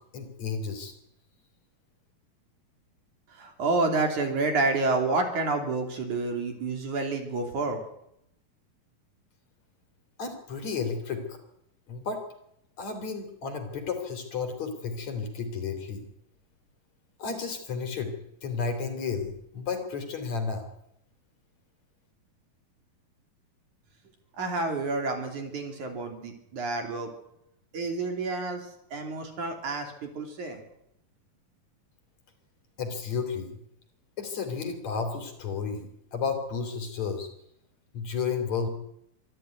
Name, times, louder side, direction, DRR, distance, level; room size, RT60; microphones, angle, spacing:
voice 1, 0.1-0.9 10.2-11.4 11.9-12.2 12.8-16.0 17.2-18.2 18.4-20.7 32.8-33.6 34.2-37.3 37.9-38.7, left 5 dB, 50° left, 6 dB, 3.9 m, -32 dB
voice 2, 3.3-7.8 24.4-27.1 27.7-28.6 28.9-30.6, right 3 dB, 55° right, 4 dB, 4.3 m, -29 dB
25.5 x 12.5 x 9.4 m, 0.77 s
omnidirectional pair, 4.3 m